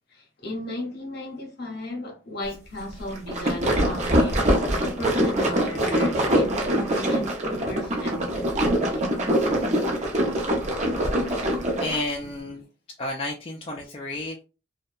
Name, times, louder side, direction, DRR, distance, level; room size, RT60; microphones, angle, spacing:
voice 1, 0.1-9.0 9.5-9.7 12.4-12.6 13.7-13.8, left 1 dB, 55° left, 0.7 m, -36 dB
sound 1, 3.1-12.0, right 1 dB, 35° right, 0.6 m, -23 dB
voice 2, 11.8-12.6 13.0-14.4, left 2 dB, 30° left, 0.3 m, -31 dB
2.7 x 2.1 x 2.3 m
head